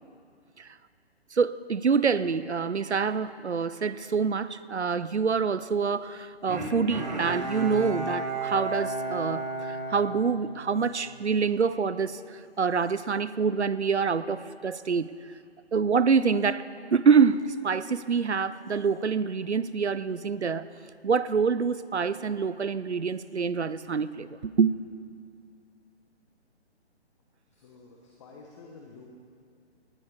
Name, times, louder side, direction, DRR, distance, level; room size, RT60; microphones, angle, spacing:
voice 1, 1.3-15.1 15.7-20.6 21.0-24.7, right 5 dB, 85° right, 16 dB, 0.6 m, -26 dB
Bowed string instrument, 6.5-11.0 11.4-11.5, right 2 dB, 40° right, 1.9 m, -33 dB
voice 2, 27.5-29.1, left 4 dB, 25° left, 0 dB, 1.1 m, -50 dB
18.5 x 9.6 x 4.9 m, 2.4 s
figure-of-eight pair, 135°, 33 cm